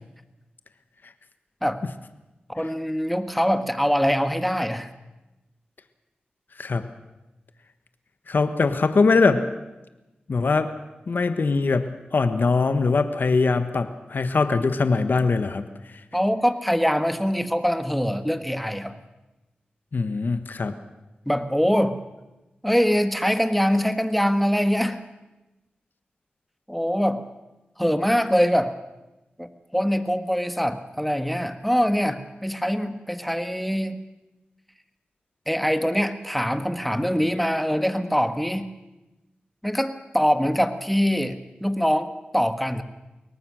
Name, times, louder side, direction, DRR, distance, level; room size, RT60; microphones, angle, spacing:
voice 1, 2.5-4.9 16.1-18.9 21.3-22.0 22.6-25.0 26.7-27.2 27.8-28.8 29.4-34.0 35.5-38.7 39.6-42.1 42.3-42.8, equal, ahead, 9 dB, 1.7 m, -23 dB
voice 2, 8.3-9.5 10.3-10.7 11.1-15.6 19.9-20.7, left 4 dB, 65° left, 10 dB, 1.3 m, -22 dB
23.0 x 18.5 x 6.4 m, 1.0 s
cardioid pair, 50°, 3 cm